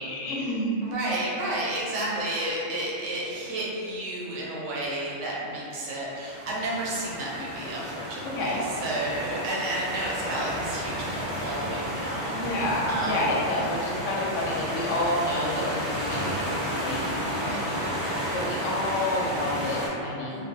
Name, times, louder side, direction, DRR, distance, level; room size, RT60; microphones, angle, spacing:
voice 1, 0.0-0.8 8.4-8.6 12.3-17.3 18.3-20.4, left 1 dB, 85° left, -5 dB, 0.9 m, -29 dB
voice 2, 0.8-12.5 12.9-13.2 17.3-17.7 20.3-20.4, right 1 dB, 85° right, -5 dB, 0.9 m, -32 dB
sound 1, 6.1-19.9, equal, 25° right, 0.3 m, -32 dB
2.4 x 2.1 x 2.6 m, 2.6 s
omnidirectional pair, 1.2 m